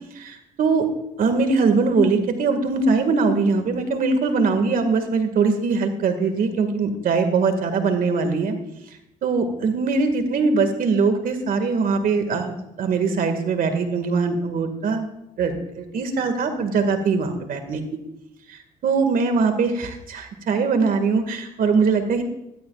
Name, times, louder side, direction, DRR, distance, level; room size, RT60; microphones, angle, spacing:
voice 1, 0.1-0.8 1.2-8.5 9.2-15.1 15.4-17.8 18.5-22.2, right 4 dB, 65° right, 7 dB, 2.0 m, -22 dB
19.5 x 13.0 x 2.5 m, 0.86 s
supercardioid pair, 75°, 16 cm